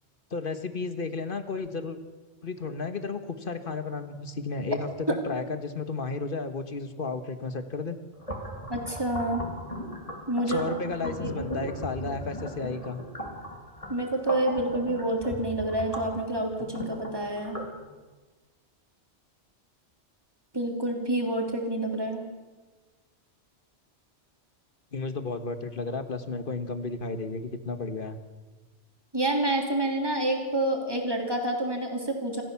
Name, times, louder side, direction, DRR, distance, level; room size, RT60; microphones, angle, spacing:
voice 1, 0.3-2.0 2.4-8.0 10.5-13.0 24.9-28.2, left 4 dB, 50° left, 9 dB, 1.6 m, -33 dB
sound 1, 8.2-17.7, equal, 30° left, 3.2 m, -38 dB
voice 2, 8.7-9.4 10.3-10.6 11.0-11.3 13.9-17.6 20.5-22.2 29.1-32.4, right 1 dB, 20° right, 1 dB, 3.5 m, -28 dB
27.0 x 15.0 x 7.2 m, 1.3 s
omnidirectional pair, 1.2 m